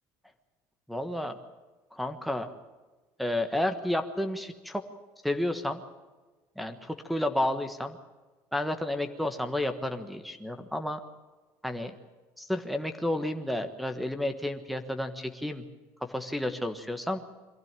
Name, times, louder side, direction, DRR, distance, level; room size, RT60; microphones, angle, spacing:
voice 1, 0.9-1.3 1.9-2.5 3.2-4.8 5.2-5.8 6.6-8.0 8.5-11.0 11.6-11.9 12.4-15.6 16.1-17.2, left 1 dB, ahead, 5 dB, 1.3 m, -31 dB
23.0 x 16.0 x 9.0 m, 1.2 s
cardioid pair, 170°, 8 cm